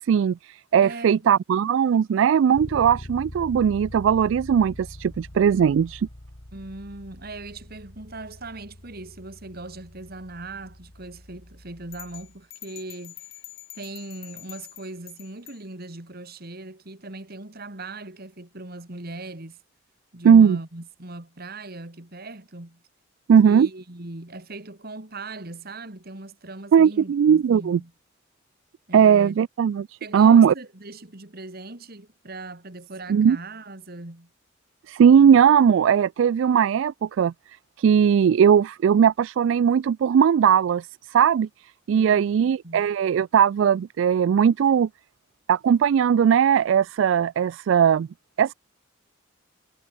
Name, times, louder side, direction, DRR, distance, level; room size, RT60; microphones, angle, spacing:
voice 1, 0.0-6.1 20.2-20.6 23.3-23.7 26.7-27.8 28.9-29.9 30.1-30.5 33.1-33.4 34.9-37.3 37.8-40.9 41.1-41.5 41.9-44.9 45.5-48.1 48.4-48.5, right 7 dB, 70° right, 0.3 m, -18 dB
voice 2, 0.8-1.3 6.5-13.2 13.7-19.6 20.1-22.8 23.4-27.9 28.9-29.4 30.0-34.3 41.9-42.9, right 2 dB, 50° right, 2.5 m, -39 dB
Bass guitar, 2.5-12.4, left 1 dB, 55° left, 3.0 m, -43 dB
sound 1, 11.9-15.6, left 15 dB, 75° left, 3.2 m, -45 dB
head